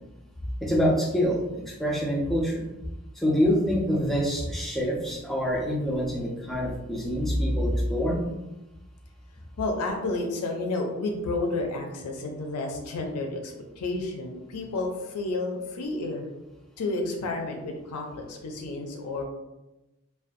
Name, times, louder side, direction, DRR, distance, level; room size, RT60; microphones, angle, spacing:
voice 1, 0.6-2.7 3.2-8.2, equal, ahead, -3 dB, 0.4 m, -26 dB
voice 2, 9.6-16.3 16.8-19.2, left 2 dB, 85° left, 2 dB, 0.4 m, -31 dB
2.5 x 2.2 x 2.5 m, 0.99 s
head